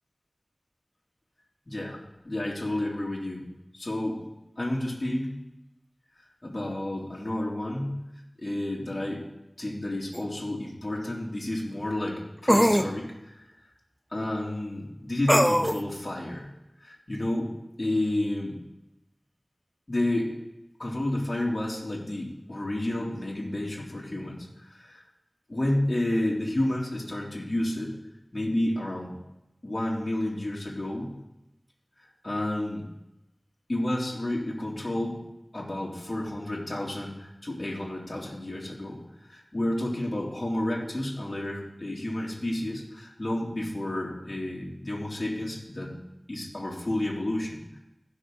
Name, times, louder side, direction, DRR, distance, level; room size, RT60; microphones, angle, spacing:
voice 1, 1.7-3.4 3.7-4.3 4.6-5.4 6.4-8.0 8.4-9.3 9.6-13.5 14.1-16.5 16.8-18.6 19.9-20.3 20.8-25.0 25.5-28.0 28.3-29.1 29.6-31.1 32.2-32.9 33.7-35.2 35.5-39.0 39.3-46.0 46.3-47.8, left 1 dB, 45° left, -4 dB, 2.5 m, -31 dB
sound 1, 10.1-10.2 12.5-12.9 15.3-15.8, equal, ahead, 0.4 m, -20 dB
16.5 x 5.9 x 3.8 m, 0.92 s
wide cardioid pair, 50°, 0 cm